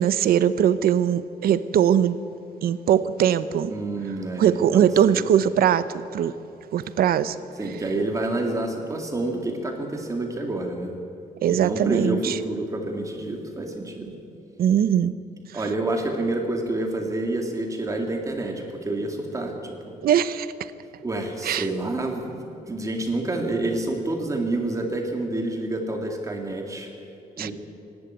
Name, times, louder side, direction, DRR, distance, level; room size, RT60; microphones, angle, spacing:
voice 1, 0.0-2.2 2.6-3.7 4.4-5.9 6.1-6.3 6.7-7.4 11.4-12.4 14.6-15.1 20.0-20.5 21.4-21.7 27.4-27.5, right 9 dB, 90° right, 14 dB, 0.9 m, -20 dB
voice 2, 3.7-5.2 7.6-10.9 11.5-14.2 15.5-19.9 21.0-26.9 27.4-27.5, right 2 dB, 20° right, 3 dB, 2.3 m, -28 dB
25.5 x 12.0 x 9.4 m, 2.7 s
wide cardioid pair, 165°, 15 cm